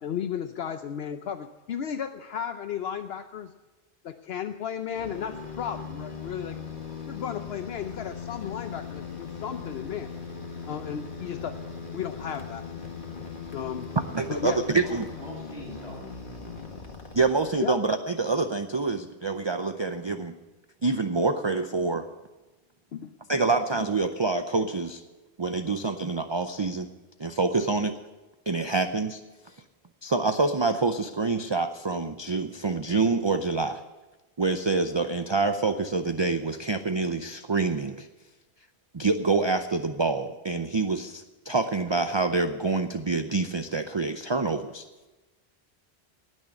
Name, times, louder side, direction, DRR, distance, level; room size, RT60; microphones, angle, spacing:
voice 1, 0.0-3.5 4.0-6.6 7.1-10.1 10.7-11.6 11.9-12.6 13.5-13.9 14.3-14.6 17.6-17.8 22.9-23.1, left 8 dB, 70° left, 8 dB, 0.9 m, -34 dB
sound 1, 4.9-17.8, left 5 dB, 50° left, 1.9 m, -39 dB
voice 2, 14.0-15.1 17.1-20.3 20.8-22.0 23.3-25.0 25.4-26.9 27.2-28.0 28.5-29.2 29.5-29.6 30.0-33.8 34.4-38.1 38.9-44.8, right 3 dB, 30° right, 8 dB, 0.6 m, -26 dB
voice 3, 14.8-16.0, left 1 dB, 30° left, -3 dB, 5.8 m, -43 dB
19.0 x 6.4 x 9.5 m, 1.1 s
omnidirectional pair, 1.1 m